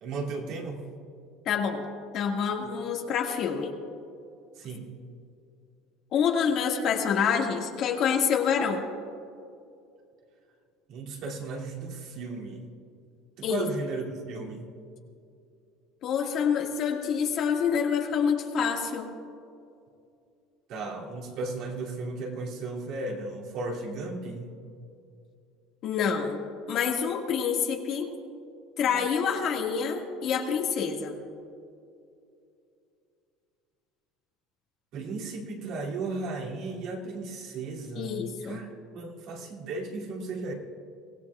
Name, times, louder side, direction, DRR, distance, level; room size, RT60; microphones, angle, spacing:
voice 1, 0.0-0.9 4.6-4.9 10.9-12.7 13.4-14.7 20.7-24.6 28.9-29.1 34.9-38.7 38.9-40.5, right 3 dB, 55° right, -2 dB, 2.7 m, -35 dB
voice 2, 1.5-1.9 2.1-3.7 6.1-8.8 13.4-13.7 16.0-19.1 25.8-26.4 26.7-28.1 28.8-31.1 38.0-38.6, left 7 dB, 45° left, 1 dB, 1.9 m, -27 dB
24.0 x 17.0 x 2.4 m, 2.5 s
cardioid pair, 150°, 0 cm